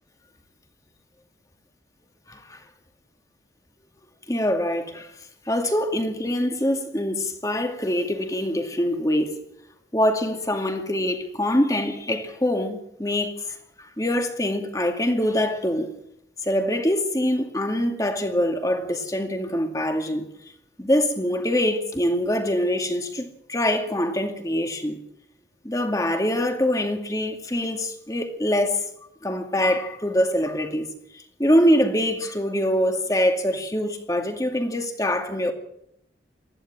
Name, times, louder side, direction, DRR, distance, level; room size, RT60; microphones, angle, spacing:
voice 1, 2.3-2.6 4.3-5.1 5.5-9.4 9.9-15.9 16.4-20.3 20.8-25.0 25.6-28.8 29.2-30.9 31.1-35.5, left 1 dB, 20° left, 2.3 m, -24 dB
20.0 x 15.0 x 8.9 m
head